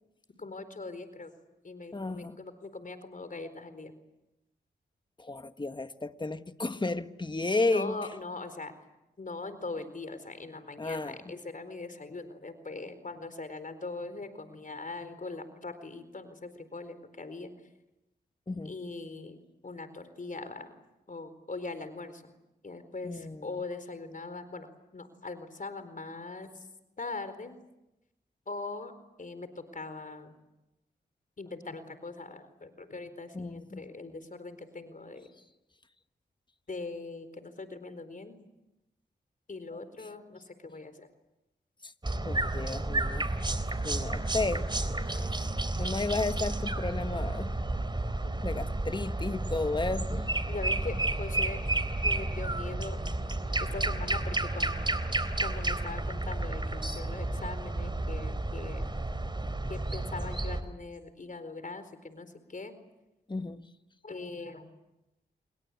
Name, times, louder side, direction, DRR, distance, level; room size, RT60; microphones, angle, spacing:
voice 1, 0.4-1.3 1.6-3.9 7.6-8.7 9.2-17.5 18.6-20.8 21.1-22.3 22.6-24.7 24.9-26.6 27.0-27.5 28.5-28.9 29.2-30.4 31.4-35.3 36.7-38.4 39.5-41.1 48.2-48.5 50.5-51.6 52.0-53.0 53.6-54.9 55.4-58.9 59.7-62.7 64.0-64.7, left 3 dB, 45° left, 4.3 m, -41 dB
voice 2, 1.9-2.4 5.2-8.0 10.8-11.2 18.5-18.7 23.0-23.5 33.3-33.8 41.8-41.9 42.2-43.3 43.8-44.7 45.3-45.4 45.8-47.6 48.4-50.3 63.3-63.7, left 3 dB, 25° left, 1.5 m, -33 dB
sound 1, 42.0-60.6, right 2 dB, 25° right, 3.6 m, -31 dB
27.5 x 23.0 x 8.5 m
cardioid pair, 50°, 18 cm